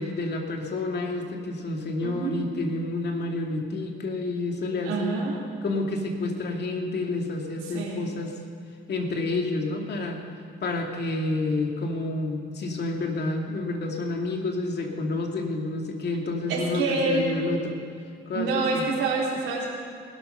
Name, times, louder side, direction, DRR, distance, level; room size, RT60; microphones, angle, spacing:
voice 1, 0.0-5.2 5.6-8.4 8.9-10.2 10.6-17.8 18.3-18.8, left 2 dB, 55° left, 2 dB, 2.4 m, -29 dB
voice 2, 2.0-2.4 4.8-5.4 7.6-8.0 16.5-17.3 18.3-19.7, right 3 dB, 85° right, -4 dB, 3.7 m, -27 dB
19.5 x 12.5 x 5.7 m, 2.3 s
cardioid pair, 90°, 20 cm